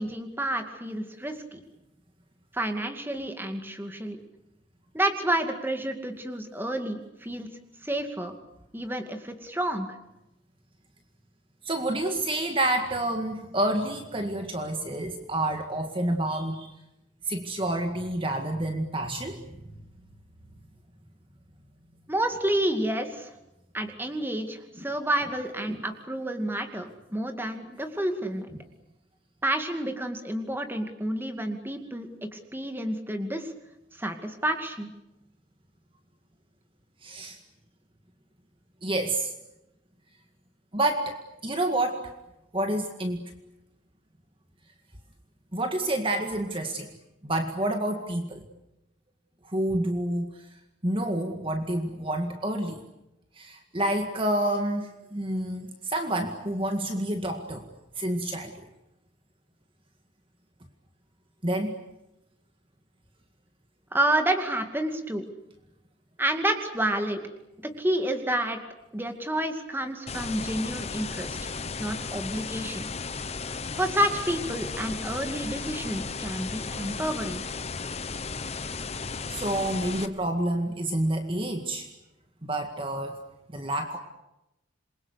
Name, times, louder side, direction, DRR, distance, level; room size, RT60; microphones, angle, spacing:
voice 1, 0.0-1.6 2.5-4.2 4.9-7.5 7.8-8.3 8.7-9.9 22.1-23.3 23.7-28.5 29.4-33.5 34.0-34.9 63.9-65.3 66.2-67.2 67.8-68.6 68.9-71.4 71.8-72.9 73.8-77.4, right 1 dB, 10° right, 6 dB, 2.3 m, -29 dB
voice 2, 11.6-16.7 17.3-19.4 24.8-24.9 25.6-25.8 37.0-37.4 38.8-39.3 40.7-41.2 41.4-42.1 42.5-43.2 45.5-46.9 47.2-48.4 49.4-50.3 50.8-52.8 53.4-57.6 58.0-58.5 61.4-61.8 79.3-81.9 82.4-83.2 83.5-84.0, right 1 dB, 25° right, 5 dB, 1.9 m, -28 dB
sound 1, 70.1-80.1, left 4 dB, 35° left, 1.1 m, -35 dB
27.5 x 22.5 x 8.3 m, 0.90 s
head